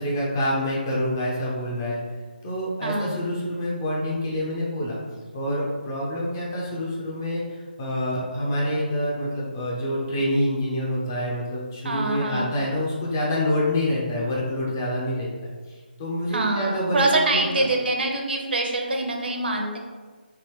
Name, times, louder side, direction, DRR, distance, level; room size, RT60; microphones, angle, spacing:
voice 1, 0.0-2.0 2.4-5.0 5.3-15.3 15.7-17.6, left 1 dB, 20° left, -5 dB, 0.5 m, -27 dB
voice 2, 2.8-3.2 11.8-12.6 16.3-19.8, right 2 dB, 70° right, 1 dB, 0.7 m, -25 dB
3.3 x 2.5 x 2.9 m, 1.4 s
hypercardioid pair, 170°, 6 cm